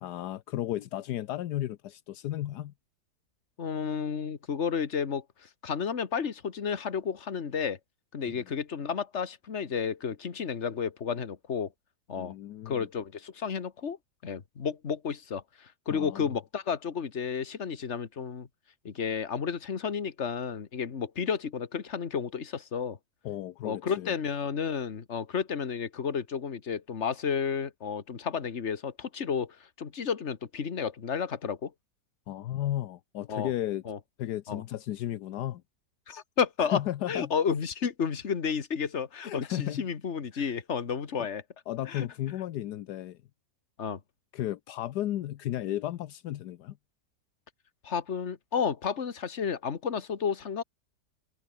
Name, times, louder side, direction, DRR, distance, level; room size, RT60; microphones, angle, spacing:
voice 1, 0.0-2.7 8.2-8.4 12.2-12.9 15.9-16.3 23.2-24.1 32.3-33.8 34.2-35.6 36.6-37.3 39.2-39.8 40.3-40.5 41.7-43.2 44.3-46.8, left 13 dB, 80° left, 1.3 m, -34 dB
voice 2, 3.6-7.8 8.1-11.7 12.1-12.3 12.7-14.0 14.2-18.5 18.9-23.0 23.6-31.7 33.3-33.5 33.9-34.0 34.5-34.6 36.1-36.8 37.1-41.4 41.9-42.1 43.8-44.0 47.8-50.6, left 6 dB, 45° left, 1.8 m, -32 dB
omnidirectional pair, 1.8 m